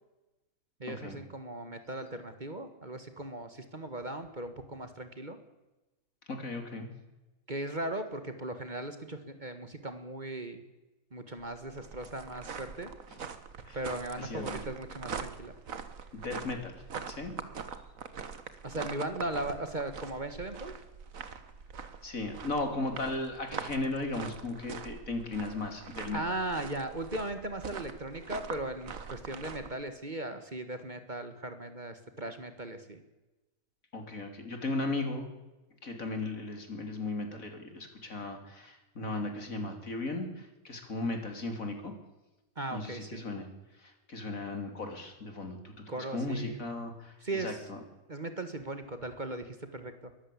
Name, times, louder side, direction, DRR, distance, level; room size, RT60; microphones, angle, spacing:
voice 1, 0.8-5.4 7.5-10.6 11.1-12.9 13.7-15.5 18.6-20.7 26.1-33.0 42.5-43.2 45.9-46.7 47.2-47.6 48.1-50.1, right 2 dB, 35° right, 9 dB, 1.7 m, -38 dB
voice 2, 6.3-6.9 13.1-13.2 13.7-13.8 14.1-14.6 16.1-17.3 22.0-26.2 33.9-35.3 35.8-41.9 42.7-43.5 43.8-47.8, left 2 dB, 70° left, 5 dB, 3.6 m, -36 dB
sound 1, 11.4-29.7, right 6 dB, 70° right, 1.8 m, -43 dB
22.0 x 14.5 x 8.5 m, 1.1 s
omnidirectional pair, 1.5 m